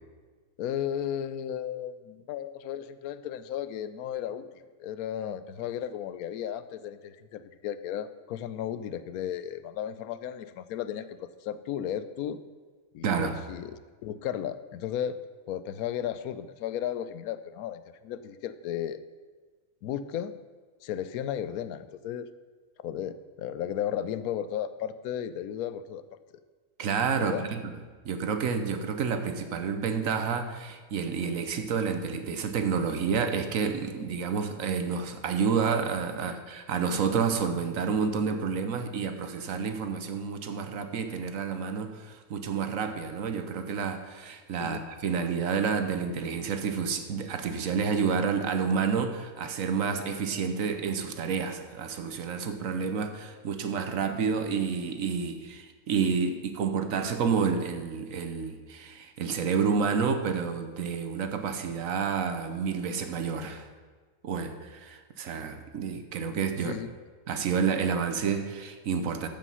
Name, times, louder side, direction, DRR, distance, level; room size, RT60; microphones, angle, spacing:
voice 1, 0.6-4.5 4.8-12.4 12.9-15.2 15.5-19.0 19.8-20.3 20.8-22.3 22.8-26.0 27.2-27.5 44.6-44.8 66.6-66.9, left 10 dB, 85° left, 13 dB, 1.1 m, -34 dB
voice 2, 13.0-13.4 26.8-27.6 28.0-63.7 64.2-66.8 67.3-69.3, right 6 dB, 70° right, 7 dB, 1.2 m, -29 dB
13.5 x 5.3 x 5.5 m, 1.4 s
omnidirectional pair, 1.5 m